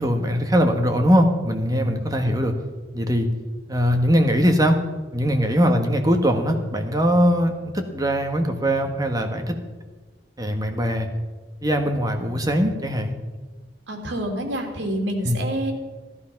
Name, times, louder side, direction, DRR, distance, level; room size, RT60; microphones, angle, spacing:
voice 1, 0.0-2.5 2.9-3.3 3.7-4.8 5.1-9.6 10.4-11.1 11.6-13.2 15.2-15.4, equal, 20° right, 4 dB, 1.3 m, -21 dB
voice 2, 13.9-15.7, right 1 dB, 90° right, 3 dB, 3.0 m, -28 dB
16.5 x 11.5 x 5.9 m, 1.3 s
head